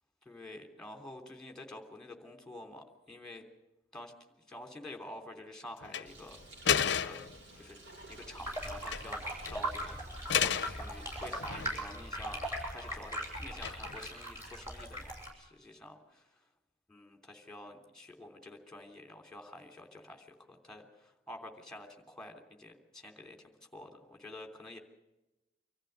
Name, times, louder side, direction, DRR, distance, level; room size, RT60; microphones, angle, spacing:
voice 1, 0.2-3.4 3.9-6.4 6.9-7.2 7.5-7.8 8.1-12.4 12.7-16.0 16.9-24.8, left 1 dB, 5° left, 4 dB, 3.2 m, -49 dB
sound 1, 5.8-6.1 6.6-7.4 8.6-9.1 9.5-9.6 10.3-10.8 11.3-12.0 13.6-14.1, left 8 dB, 65° left, 0.7 m, -31 dB
Bird, 6.0-11.8, right 1 dB, 75° right, 5.6 m, -53 dB
sound 2, 8.4-15.3, right 1 dB, 15° right, 7.0 m, -39 dB
25.5 x 14.5 x 8.1 m, 0.98 s
head